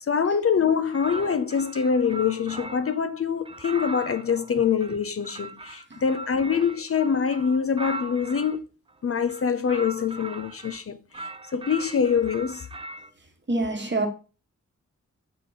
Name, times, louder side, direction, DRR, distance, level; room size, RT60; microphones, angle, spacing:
voice 1, 0.1-8.6 9.0-12.7, left 6 dB, 50° left, 0.4 m, -25 dB
sound 1, 0.9-3.0 3.5-8.6 9.2-10.8 11.1-13.1, right 2 dB, 20° right, 0.3 m, -39 dB
voice 2, 13.5-14.1, right 2 dB, 35° right, 1.2 m, -26 dB
6.8 x 3.8 x 4.0 m
wide cardioid pair, 115°, 31 cm